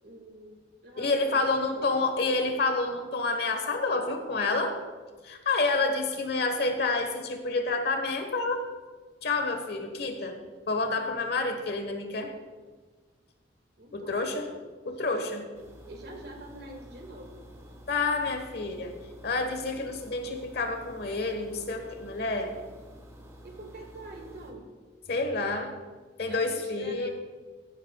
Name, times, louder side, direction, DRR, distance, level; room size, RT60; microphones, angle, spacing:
voice 1, 0.0-2.5 13.8-14.5 15.5-17.4 23.4-24.7 26.2-27.1, right 1 dB, 60° right, 2 dB, 1.9 m, -46 dB
voice 2, 1.0-4.7 5.2-8.6 9.2-10.4 10.7-12.3 13.9-14.5 14.8-15.5 17.9-18.9 19.2-22.5 25.1-25.7 26.2-27.1, left 3 dB, 60° left, 6 dB, 1.2 m, -29 dB
sound 1, 15.5-24.5, equal, 15° right, 1.5 m, -50 dB
14.0 x 12.0 x 2.3 m, 1.4 s
head